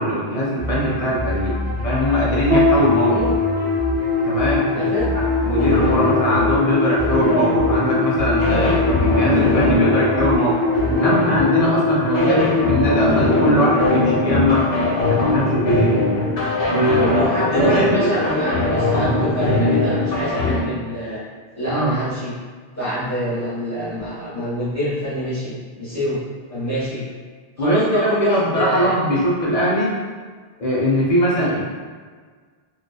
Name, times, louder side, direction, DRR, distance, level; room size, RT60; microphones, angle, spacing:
voice 1, 0.0-3.2 4.2-10.5 10.9-12.3 12.7-14.6 15.1-16.0 16.7-17.1 17.5-17.9 21.7-21.9 27.6-30.0 30.6-31.7, equal, 45° left, -6 dB, 0.6 m, -21 dB
sound 1, 0.6-11.4, left 1 dB, 15° right, 0.4 m, -28 dB
sound 2, 2.5-15.0, left 3 dB, 70° right, 0.8 m, -22 dB
voice 2, 3.1-3.4 4.7-5.1 12.1-12.4 17.1-21.2 21.6-22.3 22.7-26.2 26.5-27.0 27.6-28.9 31.3-31.6, right 1 dB, 15° left, -12 dB, 1.0 m, -25 dB
sound 3, 5.6-20.6, left 2 dB, 75° left, 0.8 m, -21 dB
2.6 x 2.3 x 2.2 m, 1.6 s
omnidirectional pair, 1.0 m